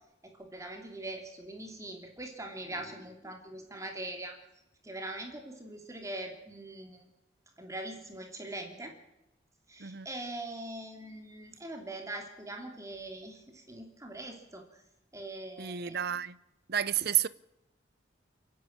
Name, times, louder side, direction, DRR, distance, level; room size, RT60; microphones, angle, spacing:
voice 1, 0.2-4.4 4.8-7.0 7.6-8.9 9.7-14.6 15.1-16.0, right 1 dB, 15° right, 3.0 m, -42 dB
voice 2, 15.6-16.4 16.7-17.3, right 10 dB, 55° right, 0.8 m, -30 dB
29.5 x 10.0 x 8.8 m
head